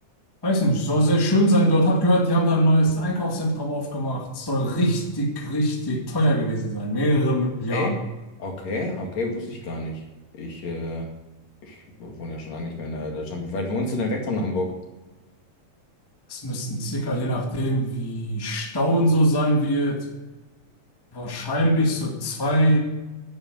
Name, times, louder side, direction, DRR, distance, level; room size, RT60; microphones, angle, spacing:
voice 1, 0.4-8.0 16.3-20.0 21.1-22.8, equal, 10° left, 1 dB, 1.4 m, -22 dB
voice 2, 8.4-10.0 10.3-11.1 11.6-14.7, left 2 dB, 60° left, 1 dB, 3.3 m, -29 dB
11.0 x 8.9 x 7.7 m, 1.1 s
omnidirectional pair, 3.6 m